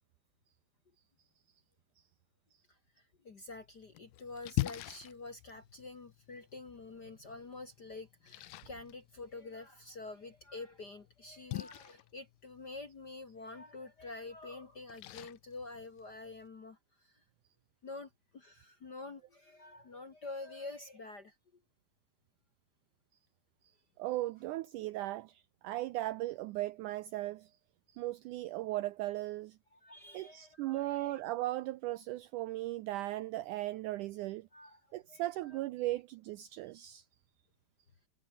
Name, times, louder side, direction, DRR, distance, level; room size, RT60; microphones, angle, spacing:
voice 1, 3.2-17.2 17.8-21.3 29.7-31.2 34.5-35.2 35.5-35.6 36.8-36.9, left 3 dB, 40° left, 1.5 m, -47 dB
Splash splatter, 3.5-16.5, left 18 dB, 75° left, 2.2 m, -45 dB
voice 2, 24.0-27.5 27.9-29.6 30.1-34.5 34.9-37.0, right 16 dB, 80° right, 1.8 m, -37 dB
omnidirectional pair, 4.2 m